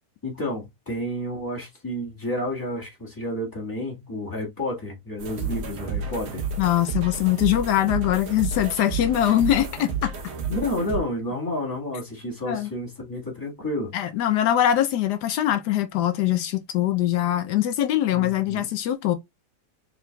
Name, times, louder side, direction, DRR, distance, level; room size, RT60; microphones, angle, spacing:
voice 1, 0.2-6.5 10.5-13.9 18.1-18.7, left 1 dB, 15° left, 1.6 m, -30 dB
sound 1, 5.2-11.0, right 4 dB, 50° right, 1.0 m, -31 dB
voice 2, 6.6-10.1 12.5-12.7 13.9-19.1, left 12 dB, 80° left, 1.2 m, -22 dB
4.9 x 3.6 x 2.3 m
omnidirectional pair, 1.8 m